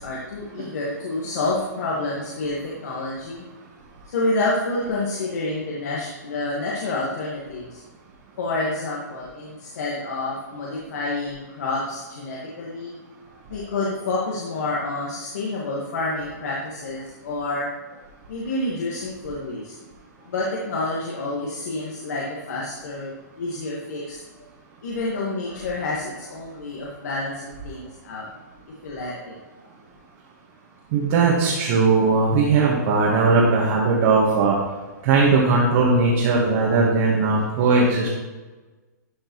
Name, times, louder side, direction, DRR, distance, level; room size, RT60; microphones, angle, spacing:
voice 1, 0.0-3.5 4.1-7.8 8.4-13.0 13.5-18.0 18.3-19.7 20.2-24.5 24.8-28.3 28.8-29.3, left 2 dB, 60° left, -5 dB, 1.7 m, -28 dB
voice 2, 30.9-34.6 35.0-38.1, right 4 dB, 40° right, -4 dB, 1.5 m, -19 dB
12.0 x 5.1 x 3.1 m, 1.2 s
hypercardioid pair, 150°, 10 cm